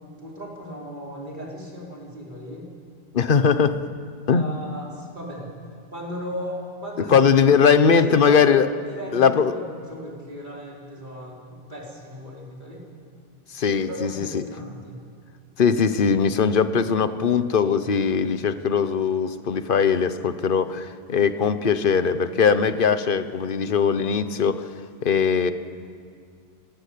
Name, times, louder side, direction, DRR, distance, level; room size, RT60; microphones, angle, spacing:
voice 1, 0.0-2.7 4.3-5.5 5.9-7.2 7.4-7.7 8.0-8.5 8.8-12.9 13.7-15.0, equal, 50° right, -3 dB, 4.7 m, -36 dB
voice 2, 3.1-3.8 4.3-4.5 7.1-8.7 9.1-9.5 13.5-14.4 15.6-24.7 25.0-25.5, left 6 dB, 55° left, 11 dB, 1.2 m, -20 dB
27.5 x 17.0 x 8.5 m, 2.2 s
omnidirectional pair, 1.1 m